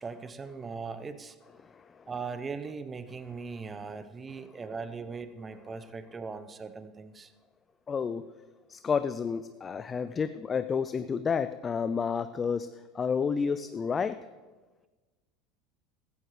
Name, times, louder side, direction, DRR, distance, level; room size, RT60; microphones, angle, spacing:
voice 1, 0.0-1.4 2.1-7.3, right 5 dB, 25° right, 11 dB, 0.9 m, -39 dB
voice 2, 1.6-2.0 7.9-8.3 8.7-14.2, left 6 dB, 30° left, 12 dB, 0.4 m, -30 dB
15.5 x 14.0 x 3.3 m, 1.3 s
hypercardioid pair, 75°, 0 cm